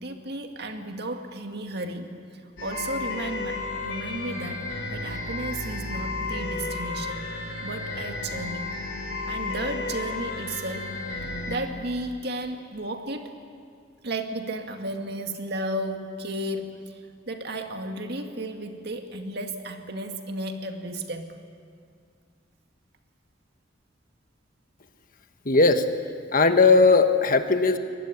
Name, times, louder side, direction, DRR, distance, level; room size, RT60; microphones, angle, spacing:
voice 1, 0.0-2.1 2.6-4.7 4.9-7.2 7.6-8.7 9.3-11.0 11.2-13.4 14.0-17.0 17.3-21.4, right 1 dB, 60° right, 5 dB, 2.1 m, -33 dB
sound 1, 2.6-11.6, left 3 dB, 85° left, 6.1 m, -33 dB
voice 2, 25.4-25.8 26.3-27.8, left 3 dB, 50° left, 7 dB, 1.4 m, -18 dB
23.5 x 18.5 x 9.9 m, 2.2 s
head